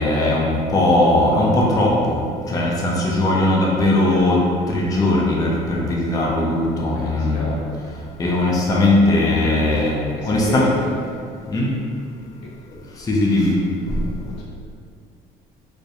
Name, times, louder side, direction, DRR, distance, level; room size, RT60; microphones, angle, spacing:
voice 1, 0.0-7.5 8.2-10.0 10.2-10.7 11.5-11.7 12.7-13.5 13.9-14.1, left 1 dB, 20° left, -4 dB, 0.4 m, -19 dB
voice 2, 7.1-7.7 10.1-10.7 14.2-14.4, left 2 dB, 80° left, -4 dB, 0.6 m, -31 dB
2.2 x 2.0 x 2.7 m, 2.3 s
supercardioid pair, 95°, 18 cm